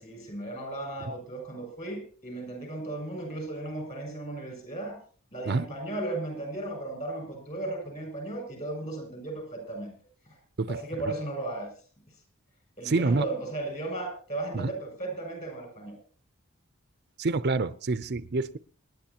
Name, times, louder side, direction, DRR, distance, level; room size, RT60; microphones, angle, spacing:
voice 1, 0.0-5.0 5.3-9.9 10.3-10.4 10.7-11.7 12.8-16.0, right 2 dB, 35° left, 3 dB, 7.5 m, -35 dB
voice 2, 12.8-13.2 14.5-14.7 17.2-18.6, right 3 dB, 50° right, 13 dB, 0.6 m, -27 dB
27.5 x 11.0 x 2.9 m, 0.41 s
head